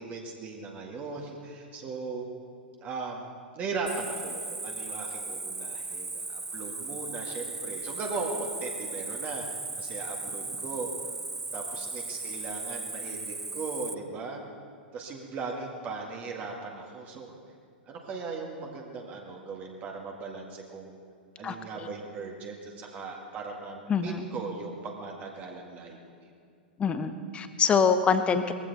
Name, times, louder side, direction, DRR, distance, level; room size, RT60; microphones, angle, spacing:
voice 1, 0.0-2.3 2.8-3.3 3.6-10.9 11.5-14.4 14.9-17.3 17.9-21.0 21.4-26.0, right 4 dB, 30° right, 0 dB, 1.8 m, -38 dB
Cricket, 3.9-13.9, right 3 dB, 5° right, 0.4 m, -37 dB
voice 2, 21.4-21.9 23.9-24.3 26.8-28.5, left 6 dB, 20° left, 10 dB, 0.9 m, -25 dB
20.0 x 15.5 x 4.1 m, 2.3 s
figure-of-eight pair, 100°, 6 cm